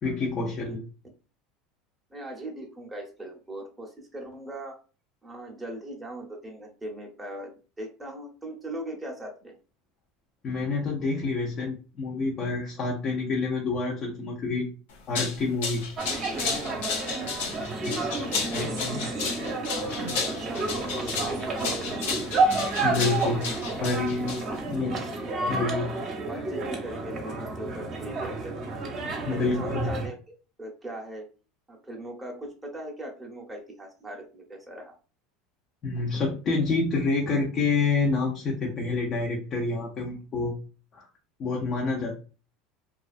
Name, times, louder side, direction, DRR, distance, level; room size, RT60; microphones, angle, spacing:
voice 1, 0.0-0.8 10.4-14.7 15.1-15.8 17.8-19.0 22.8-23.4 23.8-24.4 24.6-25.0 25.5-25.9 29.3-29.9 35.8-40.6 40.9-41.1 41.4-42.2, left 3 dB, 40° left, -1 dB, 0.6 m, -28 dB
voice 2, 2.1-4.8 5.2-9.6 17.7-19.1 20.3-22.1 24.3-24.5 25.3-25.6 26.3-28.5 29.2-31.2 31.7-35.0, right 1 dB, 10° right, -1 dB, 0.8 m, -40 dB
sound 1, 14.9-24.7, left 5 dB, 90° left, 0.7 m, -33 dB
sound 2, 16.0-30.1, right 3 dB, 40° right, 0.7 m, -30 dB
2.4 x 2.3 x 2.4 m, 0.35 s
supercardioid pair, 110°, 0 cm